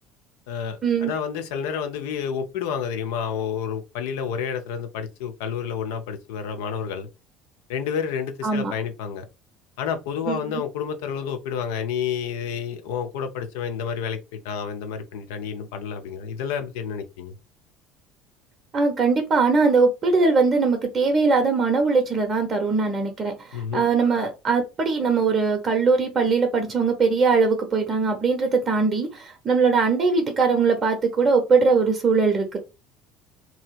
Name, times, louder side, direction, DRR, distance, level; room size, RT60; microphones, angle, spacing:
voice 1, 0.5-7.1 7.7-9.2 9.8-17.4 23.5-23.8, left 7 dB, 65° left, 0.5 m, -30 dB
voice 2, 18.7-23.3 23.7-32.6, right 4 dB, 35° right, 0.7 m, -21 dB
2.9 x 2.7 x 2.3 m
figure-of-eight pair, 60°, 0 cm